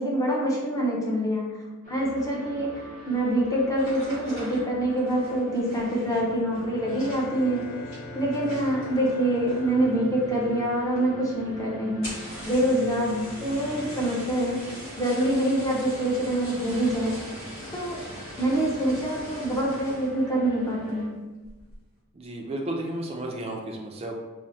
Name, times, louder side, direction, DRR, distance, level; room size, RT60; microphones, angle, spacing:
voice 1, 0.0-1.6 1.9-7.6 8.1-12.2 12.4-14.6 15.0-17.2 17.7-18.0 18.4-21.1, right 1 dB, 15° left, -4 dB, 0.6 m, -25 dB
sound 1, 1.8-21.1, equal, 35° left, 0.9 m, -44 dB
sound 2, 3.7-9.9 10.1-10.7 11.0-11.1 11.3-11.4 11.9-20.2 20.7-21.0 21.4-21.8, equal, 60° left, 1.2 m, -42 dB
Bowed string instrument, 6.7-11.5, left 3 dB, 85° left, 0.6 m, -43 dB
voice 2, 22.1-24.1, right 1 dB, 25° right, 1 dB, 0.4 m, -33 dB
4.3 x 2.0 x 2.7 m, 1.2 s
head